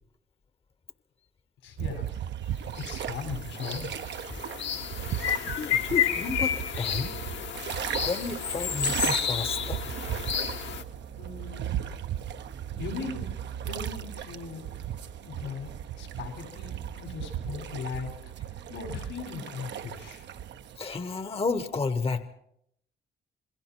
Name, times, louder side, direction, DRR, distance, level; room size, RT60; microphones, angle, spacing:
voice 1, 1.6-2.2 2.8-4.1 11.1-11.9 12.8-13.3 13.6-14.7 15.2-18.1 18.5-20.3, left 5 dB, 80° left, 5 dB, 4.9 m, -39 dB
sound 1, 1.8-20.8, right 10 dB, 65° right, 0.8 m, -36 dB
sound 2, 2.7-2.9 3.2-10.8, left 8 dB, 65° left, 1.4 m, -31 dB
voice 2, 5.6-7.2 8.0-9.8 20.7-22.3, left 4 dB, 30° left, 11 dB, 1.0 m, -31 dB
sound 3, 8.3-14.2, right 8 dB, 35° right, 0.7 m, -43 dB
28.0 x 21.5 x 4.5 m, 0.74 s
cardioid pair, 90°, 20 cm